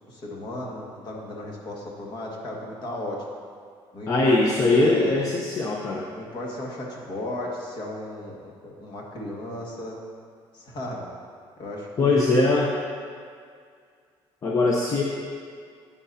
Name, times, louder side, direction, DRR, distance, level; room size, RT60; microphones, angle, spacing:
voice 1, 0.1-3.3 3.9-4.4 4.7-5.3 6.1-10.0 10.5-11.0 11.6-12.5, left 1 dB, 50° left, -2 dB, 1.9 m, -34 dB
voice 2, 4.1-6.1 12.0-12.7 14.4-15.0, left 2 dB, 35° left, -1 dB, 0.8 m, -21 dB
11.5 x 9.6 x 2.8 m, 2.2 s
cardioid pair, 130°, 10 cm